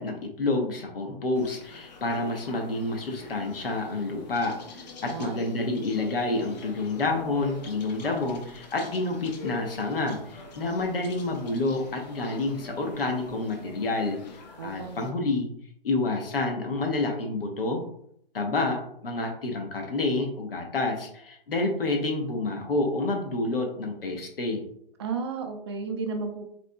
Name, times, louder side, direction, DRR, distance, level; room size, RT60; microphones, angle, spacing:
voice 1, 0.0-14.2 14.6-15.5 15.8-17.8 18.3-24.6, left 2 dB, 75° left, 2 dB, 0.9 m, -29 dB
sound 1, 1.4-15.1, left 3 dB, 45° left, 0.7 m, -45 dB
voice 2, 14.6-15.2 25.0-26.5, right 5 dB, 30° right, 4 dB, 0.4 m, -33 dB
4.2 x 2.8 x 2.2 m, 0.69 s
figure-of-eight pair, 130°, 29 cm